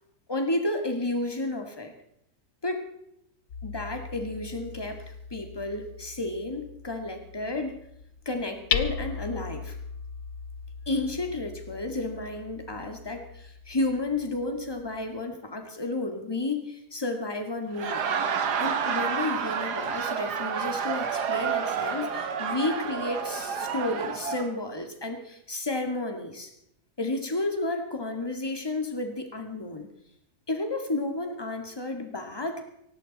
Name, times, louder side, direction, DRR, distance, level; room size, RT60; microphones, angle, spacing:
voice 1, 0.3-1.9 2.6-2.8 3.6-7.7 8.3-9.8 10.9-18.0 18.6-26.5 27.0-29.9 30.5-32.6, left 2 dB, 15° left, 5 dB, 2.0 m, -32 dB
Hammer, 3.5-15.2, left 7 dB, 65° left, 1.4 m, -38 dB
Laughter, 17.6-24.5, right 6 dB, 65° right, 1.8 m, -29 dB
18.0 x 16.0 x 4.2 m, 0.75 s
omnidirectional pair, 1.9 m